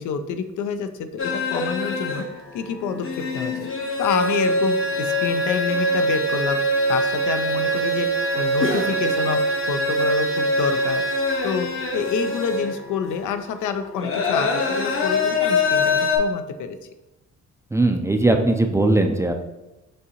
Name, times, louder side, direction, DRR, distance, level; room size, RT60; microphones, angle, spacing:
voice 1, 0.0-2.3 2.5-3.7 4.0-6.6 6.9-9.4 9.7-11.0 11.4-16.8, left 6 dB, 80° left, 9 dB, 0.5 m, -28 dB
sound 1, 1.2-2.3 2.7-12.7 13.0-13.1 14.0-16.2, left 1 dB, 45° left, 0.8 m, -23 dB
voice 2, 17.7-19.3, right 2 dB, 10° right, 4 dB, 0.4 m, -19 dB
6.4 x 2.7 x 2.8 m, 1.0 s
cardioid pair, 90°, 30 cm